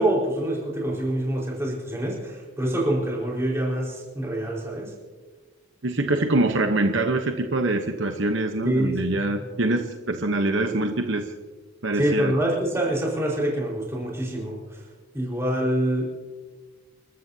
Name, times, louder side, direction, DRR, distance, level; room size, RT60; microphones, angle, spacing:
voice 1, 0.0-4.9 8.6-9.0 9.3-9.4 11.9-14.8 15.1-16.1, right 1 dB, 15° right, -3 dB, 4.6 m, -26 dB
voice 2, 5.8-11.2 11.8-12.3, right 2 dB, 60° right, 5 dB, 1.0 m, -24 dB
29.5 x 13.5 x 2.8 m, 1.3 s
head